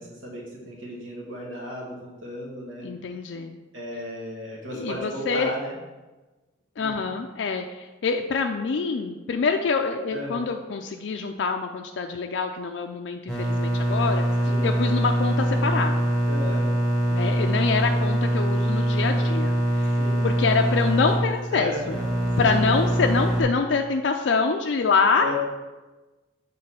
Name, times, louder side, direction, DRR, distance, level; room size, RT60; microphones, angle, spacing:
voice 1, 0.0-2.9 3.7-5.8 6.8-7.0 10.1-10.5 14.4-14.7 16.3-16.7 19.9-20.2 21.5-22.0 22.4-22.6 25.2-25.3, equal, 85° right, -3 dB, 1.4 m, -34 dB
voice 2, 2.8-3.6 4.7-5.5 6.8-14.3 14.6-16.1 17.1-19.9 20.2-21.7 22.4-25.3, left 4 dB, 65° left, 4 dB, 0.4 m, -25 dB
sound 1, 13.3-23.4, right 1 dB, ahead, 1.2 m, -23 dB
6.5 x 3.8 x 5.5 m, 1.2 s
head